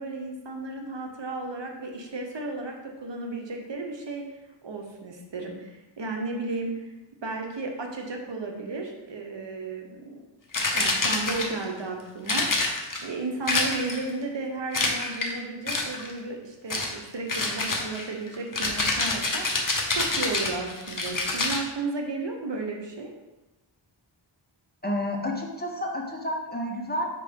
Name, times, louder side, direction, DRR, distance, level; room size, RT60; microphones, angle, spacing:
voice 1, 0.0-4.2 4.6-6.8 7.2-10.2 10.7-19.5 19.9-23.1, right 3 dB, 60° right, 1 dB, 0.9 m, -34 dB
sound 1, 10.5-11.7 12.3-13.0 13.5-14.1 14.7-15.3 15.7-16.1 16.7-17.0 17.3-21.6, left 2 dB, 40° left, 1.0 m, -27 dB
voice 2, 24.8-27.1, left 1 dB, 20° left, 0 dB, 0.9 m, -30 dB
5.0 x 3.8 x 5.1 m, 1.0 s
wide cardioid pair, 70°, 48 cm